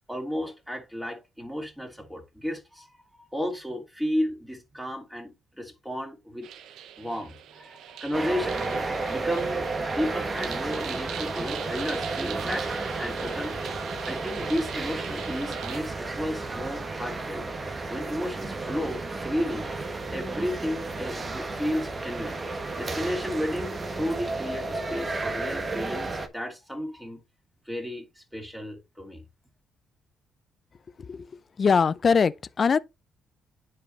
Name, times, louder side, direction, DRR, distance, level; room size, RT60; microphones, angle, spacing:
voice 1, 0.1-6.5 7.0-9.6 9.9-13.6 14.0-17.4 17.9-19.7 20.1-22.4 22.8-27.2 27.7-29.2, equal, 5° right, 2.9 m, -33 dB
sound 1, 6.4-15.8, right 10 dB, 80° right, 0.8 m, -41 dB
sound 2, 8.1-26.3, right 3 dB, 30° right, 1.2 m, -32 dB
voice 2, 31.6-32.8, left 5 dB, 40° left, 0.5 m, -22 dB
9.9 x 4.8 x 3.0 m
cardioid pair, 110°, 0 cm